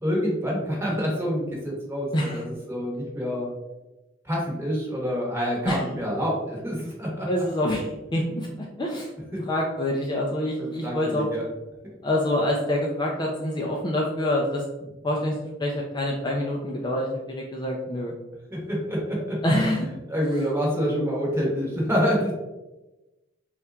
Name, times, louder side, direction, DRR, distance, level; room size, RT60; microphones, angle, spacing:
voice 1, 0.0-3.5 4.2-7.3 9.3-9.4 10.6-11.4 18.5-19.4 20.1-22.3, equal, 15° right, -3 dB, 1.1 m, -27 dB
voice 2, 7.3-9.1 9.5-11.3 12.0-14.6 15.0-18.1 19.4-19.9, left 1 dB, 20° left, -2 dB, 0.4 m, -26 dB
4.2 x 2.4 x 3.3 m, 1.1 s
head